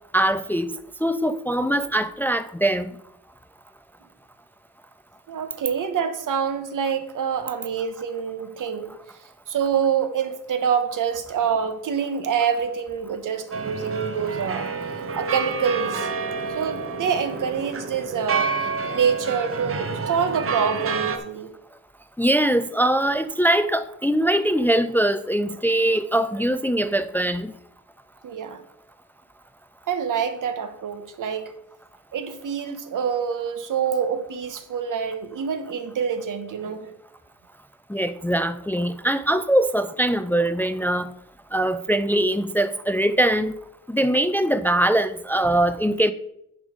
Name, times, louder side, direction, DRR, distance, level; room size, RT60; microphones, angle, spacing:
voice 1, 0.1-0.7 1.0-2.9 22.2-27.5 37.9-41.1 41.5-43.5 43.9-46.1, right 1 dB, 5° left, 0.3 m, -22 dB
voice 2, 5.3-9.0 9.5-14.7 15.1-16.1 16.5-21.5 28.2-28.6 29.9-31.5 32.1-36.9, right 7 dB, 80° right, 1.1 m, -26 dB
sound 1, 13.5-21.2, right 4 dB, 45° right, 0.9 m, -29 dB
9.9 x 5.2 x 5.1 m
wide cardioid pair, 130°, 31 cm